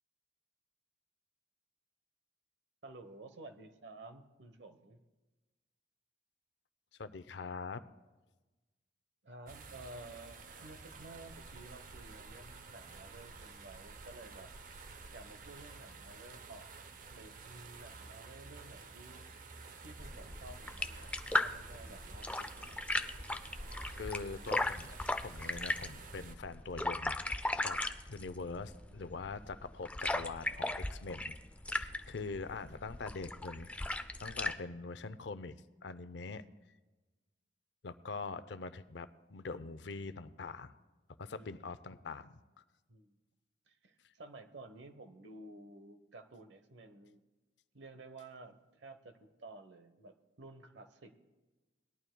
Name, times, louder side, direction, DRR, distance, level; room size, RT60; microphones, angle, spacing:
voice 1, 2.8-5.0 9.2-14.5 15.1-16.7 17.1-19.3 19.8-21.1 21.4-22.8 41.3-41.6 42.9-43.1 43.7-47.2 47.7-51.2, right 2 dB, 80° right, 8 dB, 1.0 m, -53 dB
voice 2, 7.0-7.8 23.9-27.8 28.1-31.3 31.7-35.6 35.8-36.4 37.8-40.8 41.2-42.4, left 4 dB, 75° left, 13 dB, 0.5 m, -43 dB
sound 1, 9.5-26.3, right 4 dB, 50° right, 0.7 m, -51 dB
sound 2, 20.0-34.6, left 2 dB, 5° left, 0.3 m, -38 dB
19.5 x 11.5 x 2.2 m, 1.2 s
head